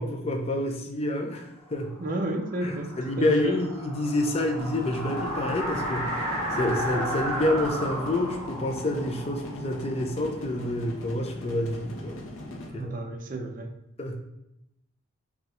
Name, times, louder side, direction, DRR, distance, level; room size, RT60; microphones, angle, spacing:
voice 1, 0.0-1.9 2.6-12.2 12.5-12.9 14.0-14.2, left 1 dB, 30° left, 2 dB, 0.5 m, -28 dB
sound 1, 2.0-10.7, equal, 20° right, 1.5 m, -34 dB
voice 2, 2.0-2.9 3.2-3.6 12.7-13.7, right 1 dB, 40° right, 3 dB, 0.5 m, -31 dB
sound 2, 4.6-12.7, left 1 dB, 85° left, 0.7 m, -41 dB
5.2 x 2.3 x 3.0 m, 0.84 s
head